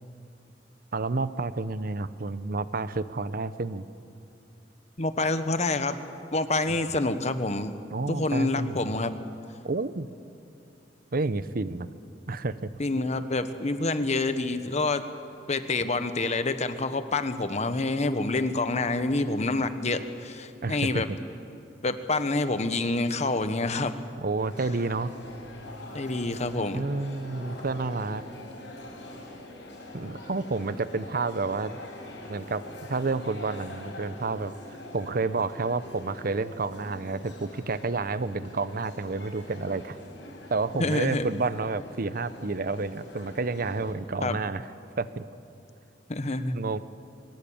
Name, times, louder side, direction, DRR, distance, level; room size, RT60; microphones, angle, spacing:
voice 1, 0.9-3.8 7.9-8.9 9.6-10.1 11.1-11.9 12.3-12.7 20.6-21.0 24.2-25.1 26.7-28.2 29.9-31.8 32.3-32.6 32.9-34.5 34.9-40.0 40.5-44.7 45.0-45.2 46.5-46.8, right 3 dB, 55° right, 14 dB, 0.7 m, -30 dB
voice 2, 5.0-6.0 6.3-7.8 8.1-9.2 12.8-15.0 15.5-21.1 21.8-24.0 25.9-26.8 40.8-41.3 44.2-44.4 46.1-46.6, left 2 dB, 40° left, 10 dB, 1.1 m, -27 dB
sound 1, 24.4-43.9, left 1 dB, 85° left, 6.0 m, -44 dB
22.5 x 19.0 x 8.7 m, 2.6 s
head